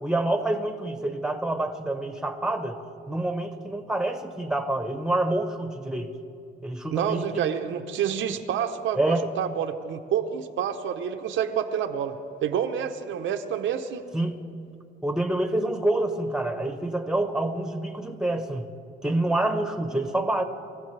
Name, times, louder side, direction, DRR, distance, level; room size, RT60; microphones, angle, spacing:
voice 1, 0.0-2.8 3.1-6.1 6.6-7.4 8.9-9.3 14.1-14.4 15.0-18.6 19.0-20.4, right 1 dB, 5° right, 7 dB, 1.1 m, -27 dB
voice 2, 6.9-12.2 12.4-14.0, right 8 dB, 75° right, 5 dB, 0.9 m, -28 dB
24.5 x 15.0 x 3.3 m, 2.5 s
cardioid pair, 90°, 20 cm